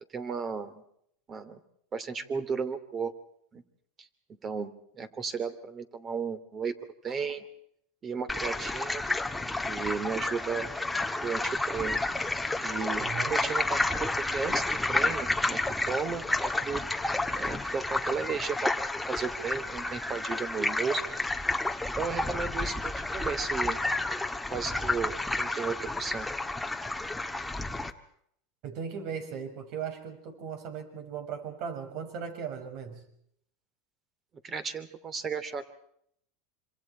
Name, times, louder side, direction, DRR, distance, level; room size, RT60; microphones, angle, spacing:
voice 1, 0.1-0.8 1.3-1.6 1.9-3.1 3.5-3.6 4.0-4.1 4.4-6.7 7.0-7.4 8.0-9.0 9.7-10.7 11.2-12.0 12.6-14.1 14.3-16.8 17.3-21.2 22.0-23.8 24.2-26.3 34.4-35.7, right 5 dB, 30° right, 12 dB, 2.8 m, -34 dB
sound 1, 8.3-27.9, left 2 dB, 5° left, 1.5 m, -31 dB
voice 2, 13.0-13.4 28.6-33.0, right 7 dB, 55° right, 6 dB, 6.2 m, -38 dB
27.0 x 26.5 x 4.5 m, 0.70 s
supercardioid pair, 120°, 0 cm